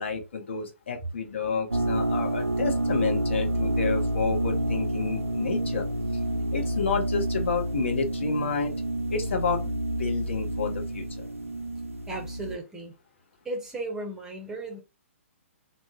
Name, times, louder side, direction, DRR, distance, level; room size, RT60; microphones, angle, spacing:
voice 1, 0.0-5.8 6.5-8.7 9.1-9.7 10.0-11.3, left 5 dB, 60° left, 0.8 m, -30 dB
sound 1, 1.7-12.6, right 1 dB, 85° right, 0.4 m, -29 dB
voice 2, 12.1-12.9 13.4-14.8, right 2 dB, 10° right, 0.6 m, -35 dB
2.5 x 2.0 x 3.5 m
figure-of-eight pair, 120°, 7 cm